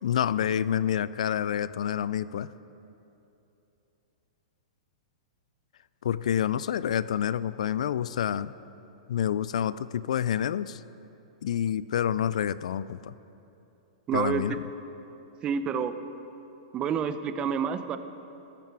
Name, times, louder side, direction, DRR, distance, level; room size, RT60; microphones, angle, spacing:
voice 1, 0.0-2.5 6.0-8.5 9.1-10.8 11.4-13.1 14.1-14.7, left 9 dB, 75° left, 17 dB, 0.3 m, -28 dB
voice 2, 14.1-14.6 15.4-15.9 16.7-18.0, right 7 dB, 25° right, 11 dB, 0.7 m, -28 dB
13.5 x 13.0 x 4.8 m, 2.9 s
hypercardioid pair, 130°, 4 cm